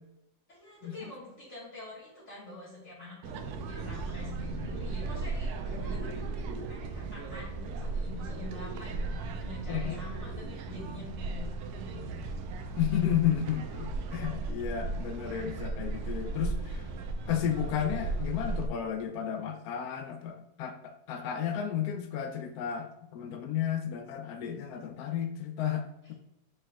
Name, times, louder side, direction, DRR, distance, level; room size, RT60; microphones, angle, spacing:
voice 1, 0.5-6.1 6.7-12.1, left 2 dB, 50° left, -9 dB, 2.2 m, -46 dB
sound 1, 3.2-18.7, right 3 dB, 80° right, 1.1 m, -36 dB
voice 2, 6.0-6.7 9.7-10.0 12.8-16.9 17.3-26.1, left 9 dB, 75° left, 7 dB, 1.1 m, -33 dB
5.0 x 4.5 x 2.3 m, 0.89 s
omnidirectional pair, 1.6 m